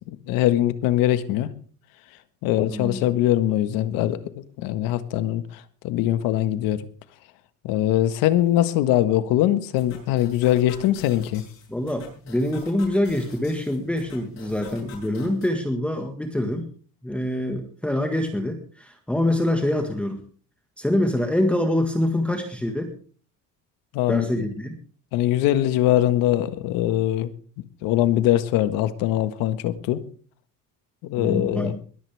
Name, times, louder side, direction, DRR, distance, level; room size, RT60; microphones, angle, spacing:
voice 1, 0.1-1.5 2.4-6.9 7.6-11.4 23.9-24.3 25.1-27.3 27.8-30.0 31.0-31.7, left 13 dB, 85° left, 12 dB, 1.6 m, -22 dB
voice 2, 2.7-3.0 11.7-16.7 17.0-20.2 20.8-22.9 24.1-24.8 31.2-31.7, left 1 dB, 5° left, 5 dB, 1.6 m, -25 dB
sound 1, 9.8-15.5, left 5 dB, 55° left, 7.5 m, -46 dB
21.0 x 14.0 x 3.5 m, 0.41 s
cardioid pair, 155°, 33 cm